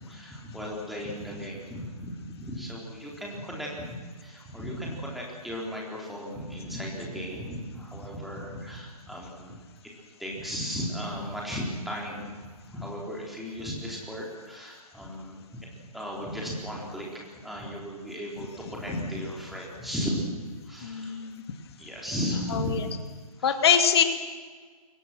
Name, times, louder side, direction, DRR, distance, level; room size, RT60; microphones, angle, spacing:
voice 1, 0.0-9.6 10.2-20.3 20.6-21.2 21.8-22.8 23.4-23.5, equal, ahead, -3 dB, 4.2 m, -36 dB
voice 2, 20.8-21.3 23.4-24.0, left 8 dB, 40° left, 7 dB, 2.5 m, -22 dB
29.5 x 22.5 x 6.2 m, 1.5 s
figure-of-eight pair, 140°, 20 cm